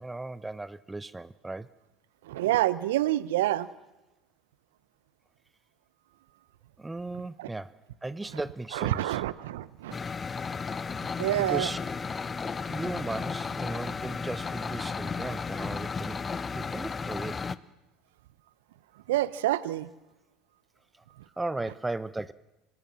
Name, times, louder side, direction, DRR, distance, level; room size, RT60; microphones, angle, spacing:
voice 1, 0.0-1.7 6.8-9.2 10.9-11.8 12.7-16.2 16.5-17.4 21.4-22.3, right 2 dB, 10° right, 0.8 m, -36 dB
voice 2, 2.2-3.7 7.4-7.5 8.7-10.0 11.2-11.7 19.1-19.9, right 15 dB, 75° right, 0.7 m, -27 dB
sound 1, 9.9-17.6, left 5 dB, 25° left, 0.8 m, -34 dB
25.5 x 18.5 x 7.5 m
hypercardioid pair, 70°, 0 cm